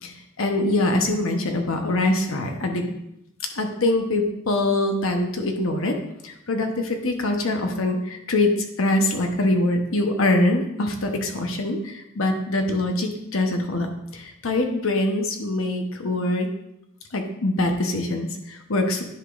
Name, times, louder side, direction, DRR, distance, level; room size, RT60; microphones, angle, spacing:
voice 1, 0.0-2.9 3.5-6.0 6.2-16.5 17.1-19.0, left 2 dB, 75° left, 3 dB, 1.0 m, -24 dB
9.9 x 5.9 x 2.5 m, 0.82 s
head